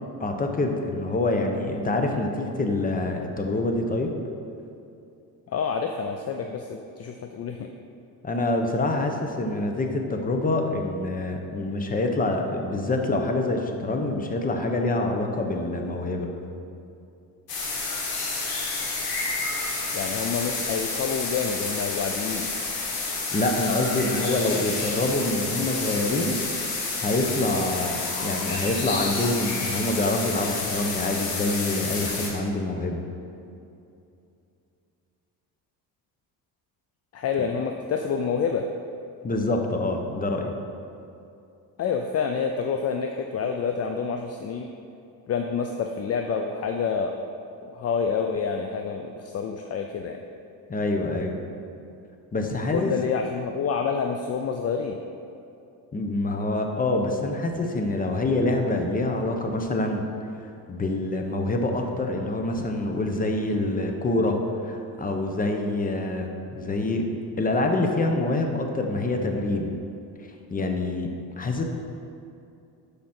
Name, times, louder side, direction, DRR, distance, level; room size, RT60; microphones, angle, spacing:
voice 1, 0.2-4.1 8.2-16.3 23.3-26.3 27.0-33.0 39.2-40.5 50.7-51.4 52.3-52.9 55.9-60.0 60.7-64.4 64.6-67.0 67.4-69.7 70.5-71.1 71.4-71.6, left 2 dB, 20° left, 3 dB, 0.9 m, -26 dB
voice 2, 5.5-7.7 19.9-22.5 37.1-38.7 41.8-44.7 45.3-47.2 47.6-50.2 52.7-55.0, left 6 dB, 40° left, 4 dB, 0.5 m, -28 dB
sound 1, 17.5-32.3, left 3 dB, 65° left, 2.0 m, -30 dB
12.5 x 5.1 x 4.4 m, 2.6 s
cardioid pair, 120°, 38 cm